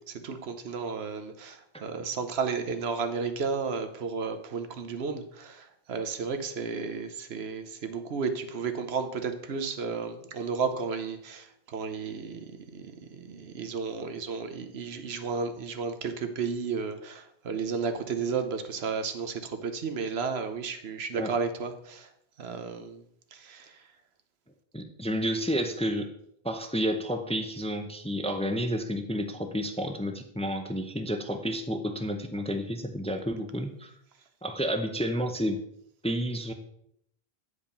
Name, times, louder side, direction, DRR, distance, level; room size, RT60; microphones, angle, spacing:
voice 1, 0.1-12.4 12.7-22.1 22.4-23.0 23.3-23.8, right 5 dB, 85° right, 8 dB, 1.1 m, -33 dB
voice 2, 24.7-26.1 26.4-33.9 34.4-35.6 36.0-36.5, equal, 10° left, 6 dB, 0.5 m, -30 dB
8.7 x 5.1 x 5.3 m, 0.72 s
omnidirectional pair, 1.0 m